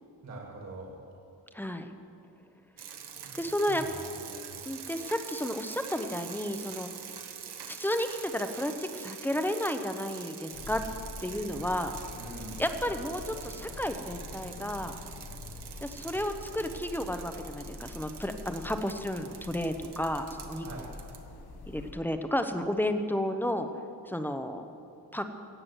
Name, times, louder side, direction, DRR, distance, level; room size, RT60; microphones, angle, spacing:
voice 1, 0.2-1.0 3.1-4.5 12.2-12.6 20.6-20.9, right 2 dB, 45° right, -1 dB, 1.9 m, -44 dB
voice 2, 1.5-1.9 3.3-3.9 4.7-6.9 7.6-10.8 11.2-11.9 12.6-15.0 15.8-20.9 21.7-23.7 24.1-24.6 25.1-25.3, left 1 dB, 5° left, 7 dB, 0.7 m, -32 dB
sound 1, 2.8-21.2, right 8 dB, 80° right, 1.3 m, -45 dB
sound 2, 10.5-21.9, left 3 dB, 70° left, 1.4 m, -45 dB
17.0 x 7.6 x 8.1 m, 2.5 s
wide cardioid pair, 170°, 39 cm